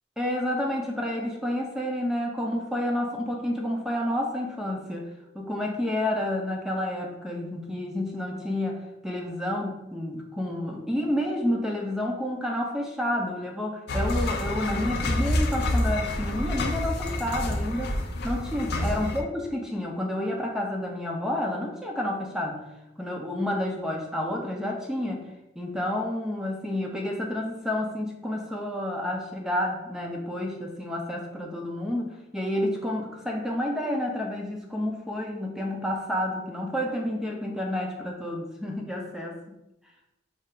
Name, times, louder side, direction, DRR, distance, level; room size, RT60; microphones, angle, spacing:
voice 1, 0.2-5.1 5.3-18.0 18.2-22.6 23.0-25.2 25.6-39.4, left 1 dB, 5° right, -1 dB, 0.5 m, -30 dB
sound 1, 13.9-19.2, left 1 dB, 60° left, 0.5 m, -28 dB
5.4 x 2.4 x 3.7 m, 0.93 s
head